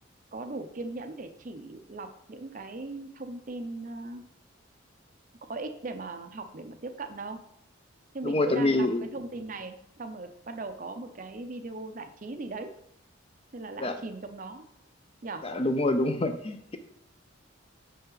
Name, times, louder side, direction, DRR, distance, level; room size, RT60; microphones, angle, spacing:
voice 1, 0.3-4.3 5.4-7.4 8.1-12.7 13.5-14.7 15.2-15.5, right 2 dB, 40° right, 8 dB, 0.5 m, -39 dB
voice 2, 8.2-9.1 13.8-14.0 15.4-16.8, left 2 dB, 30° left, 8 dB, 0.5 m, -26 dB
6.5 x 5.6 x 3.8 m, 0.76 s
head